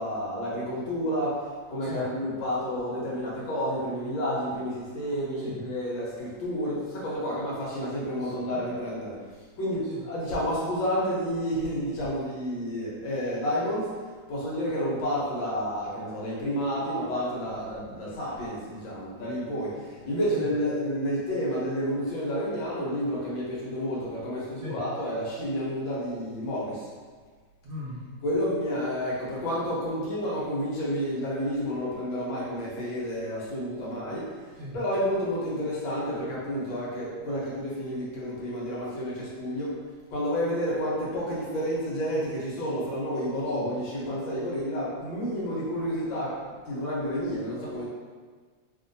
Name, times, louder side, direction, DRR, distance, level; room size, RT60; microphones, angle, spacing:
voice 1, 0.0-9.2 9.6-13.9 14.3-26.9 28.2-34.3 34.7-39.8 40.1-46.4 46.7-47.9, equal, 75° left, -6 dB, 1.6 m, -30 dB
voice 2, 1.8-2.1 5.4-5.6 8.2-8.6 9.9-10.0 20.3-20.5 24.6-24.8 27.6-28.1 34.6-34.8 43.5-43.7, left 1 dB, 65° right, -8 dB, 1.0 m, -39 dB
3.4 x 2.5 x 2.6 m, 1.5 s
omnidirectional pair, 2.1 m